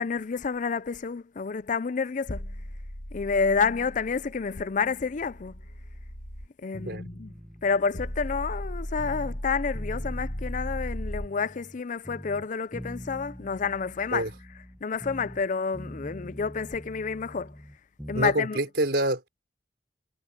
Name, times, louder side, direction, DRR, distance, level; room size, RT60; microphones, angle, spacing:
voice 1, 0.0-2.6 3.1-5.5 6.6-7.3 7.6-14.3 14.8-17.6 18.1-18.6, left 5 dB, 45° left, 0.5 m, -29 dB
sound 1, 2.3-6.5 7.9-11.3, equal, 70° left, 2.9 m, -36 dB
sound 2, 6.7-9.4 9.7-11.8 12.0-15.5 15.7-18.4, equal, ahead, 1.6 m, -44 dB
voice 2, 18.1-19.3, right 1 dB, 70° right, 5.2 m, -26 dB
head